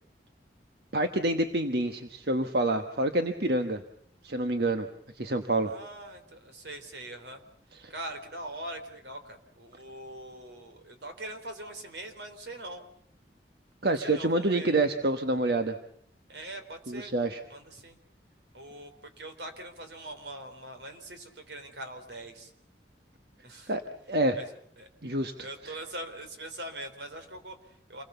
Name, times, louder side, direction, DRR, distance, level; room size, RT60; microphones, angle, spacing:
voice 1, 0.9-3.8 4.2-4.9 5.1-5.7 7.8-7.9 13.8-15.8 16.9-17.4 23.7-23.8 24.1-24.4 25.0-25.7, right 2 dB, 60° right, 7 dB, 1.3 m, -27 dB
voice 2, 5.7-7.4 7.9-12.8 13.8-14.7 16.3-17.1 17.5-18.0 18.5-22.5 23.4-23.7 24.3-24.5 24.8-24.9 25.4-28.0, right 1 dB, 80° right, 7 dB, 3.7 m, -42 dB
28.0 x 20.5 x 7.0 m, 0.67 s
head